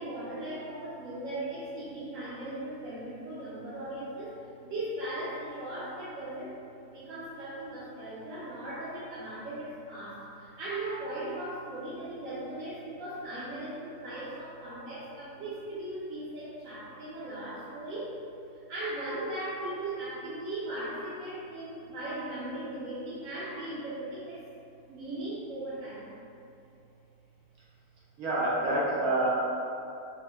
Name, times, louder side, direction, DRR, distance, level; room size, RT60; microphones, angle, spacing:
voice 1, 0.0-6.6 6.8-18.2 18.5-24.4 24.9-26.1, right 1 dB, 70° right, -10 dB, 1.0 m, -38 dB
voice 2, 28.2-29.3, right 1 dB, 85° right, -7 dB, 1.3 m, -27 dB
5.0 x 2.2 x 2.2 m, 2.7 s
omnidirectional pair, 1.5 m